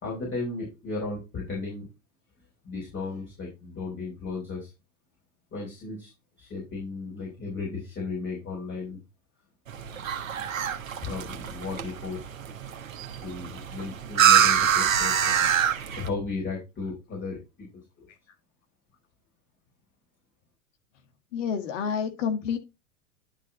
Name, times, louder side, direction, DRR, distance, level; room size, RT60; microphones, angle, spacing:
voice 1, 0.0-1.9 2.6-4.7 5.5-6.1 6.4-9.0 11.0-12.2 13.2-15.5 16.0-17.7 18.0-18.1, left 3 dB, 30° left, 4.7 m, -35 dB
sound 1, 9.7-16.1, right 9 dB, 80° right, 1.3 m, -25 dB
voice 2, 21.3-22.6, left 7 dB, 65° left, 1.8 m, -28 dB
11.5 x 4.2 x 4.0 m
hypercardioid pair, 85°, 40 cm